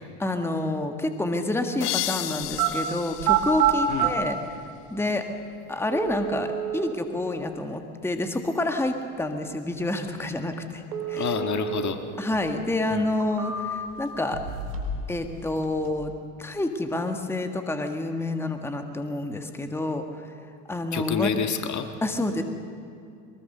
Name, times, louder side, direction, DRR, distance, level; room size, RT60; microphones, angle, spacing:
voice 1, 0.0-4.4 4.9-5.2 5.7-10.8 11.1-11.3 12.2-14.4 15.1-16.1 16.4-20.3 20.7-21.3 22.0-22.4, left 2 dB, 5° left, 6 dB, 1.6 m, -28 dB
sound 1, 1.8-4.5, left 15 dB, 80° left, 0.8 m, -33 dB
sound 2, 2.4-2.7 3.2-4.1 5.1-5.2 5.9-6.9 10.9-11.9 12.3-12.4 13.0-13.9 14.3-15.0 15.3-15.9, right 10 dB, 85° right, 3.4 m, -27 dB
voice 2, 11.1-12.0 12.9-13.1 20.9-21.9, left 7 dB, 40° left, 6 dB, 1.8 m, -28 dB
23.0 x 20.5 x 6.7 m, 2.4 s
hypercardioid pair, 80°, 46 cm